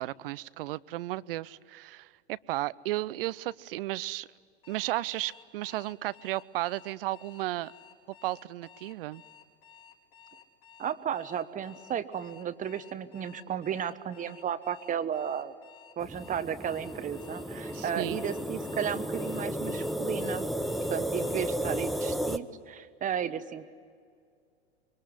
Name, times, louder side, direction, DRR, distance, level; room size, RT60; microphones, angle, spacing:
voice 1, 0.0-4.3 4.7-7.7 8.2-9.2 17.7-18.2, right 17 dB, 55° right, 20 dB, 0.7 m, -34 dB
Alarm, 4.6-21.9, left 8 dB, 45° left, 4.8 m, -55 dB
voice 2, 10.8-15.5 16.0-20.5 20.9-23.7, right 8 dB, 25° right, 12 dB, 1.1 m, -34 dB
sound 1, 16.0-22.4, equal, ahead, 0.9 m, -33 dB
25.0 x 23.5 x 9.9 m, 2.3 s
hypercardioid pair, 100°, 33 cm